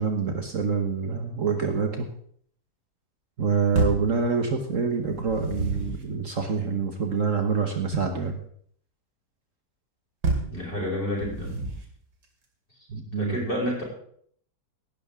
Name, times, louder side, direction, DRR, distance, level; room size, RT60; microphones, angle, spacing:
voice 1, 0.0-2.1 3.4-8.4 12.9-13.4, right 5 dB, 50° right, 4 dB, 1.5 m, -26 dB
sound 1, 3.7-4.1 5.0-6.1 10.2-10.6 11.2-11.9, right 2 dB, 90° right, 3.0 m, -28 dB
voice 2, 10.5-11.6 13.2-13.8, left 1 dB, 30° left, -3 dB, 5.8 m, -29 dB
17.5 x 11.5 x 3.7 m, 0.62 s
omnidirectional pair, 1.8 m